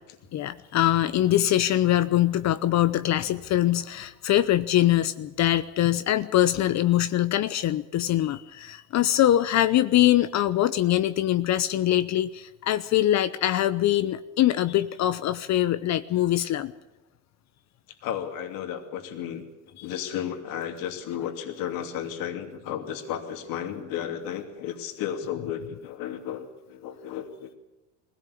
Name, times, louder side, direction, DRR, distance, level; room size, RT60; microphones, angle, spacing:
voice 1, 0.3-16.7 19.8-19.9, left 13 dB, 50° left, 13 dB, 0.8 m, -23 dB
voice 2, 18.0-27.6, left 9 dB, 65° left, 5 dB, 2.8 m, -33 dB
20.5 x 16.5 x 8.5 m, 1.0 s
supercardioid pair, 95°, 36 cm